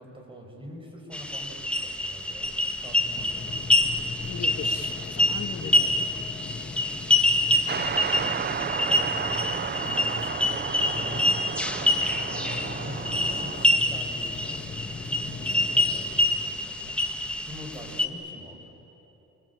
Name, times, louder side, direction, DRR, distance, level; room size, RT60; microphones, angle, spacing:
voice 1, 0.0-3.6 6.3-6.8 7.0-7.5 7.8-8.6 9.0-11.3 12.8-18.7, equal, 15° right, 1 dB, 7.1 m, -45 dB
sound 1, 1.1-18.1, left 1 dB, 5° left, 1.9 m, -26 dB
sound 2, 2.8-16.6, left 4 dB, 25° left, 1.0 m, -40 dB
voice 2, 4.1-6.1 7.4-7.9 12.4-12.8, left 6 dB, 50° left, 3 dB, 2.5 m, -40 dB
sound 3, 7.7-13.7, right 8 dB, 35° right, 0.5 m, -33 dB
29.0 x 21.5 x 9.0 m, 3.0 s
cardioid pair, 90°, 30 cm